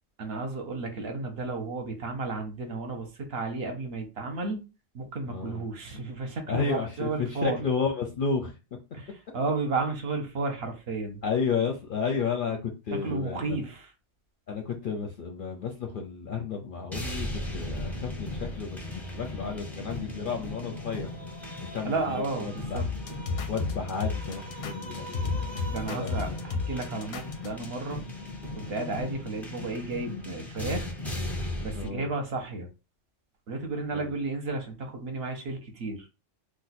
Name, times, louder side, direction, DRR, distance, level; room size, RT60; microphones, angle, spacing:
voice 1, 0.2-4.6 4.9-7.6 9.0-11.2 13.0-13.8 21.9-22.8 25.7-28.0 28.5-30.9 31.6-32.7 33.5-36.1, right 3 dB, 60° right, 0.8 m, -33 dB
voice 2, 5.3-5.6 6.5-8.6 11.2-13.6 14.5-21.1 21.7-22.9 23.5-26.4 31.7-32.1 33.9-34.1, left 5 dB, 60° left, 0.6 m, -32 dB
sound 1, 16.9-31.9, left 1 dB, ahead, 0.4 m, -37 dB
sound 2, 22.8-27.7, left 4 dB, 85° left, 0.9 m, -31 dB
2.6 x 2.2 x 4.0 m
omnidirectional pair, 1.3 m